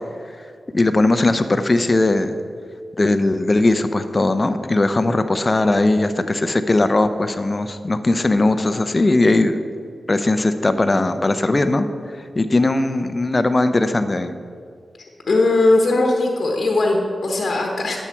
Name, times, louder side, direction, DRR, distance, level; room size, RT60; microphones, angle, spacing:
voice 1, 0.7-2.3 3.0-9.6 10.1-11.9 12.4-14.3, left 2 dB, 35° left, 9 dB, 0.6 m, -18 dB
voice 2, 15.3-18.0, left 2 dB, 65° left, 1 dB, 1.1 m, -18 dB
9.7 x 7.3 x 4.5 m, 2.1 s
cardioid pair, 45°, 0 cm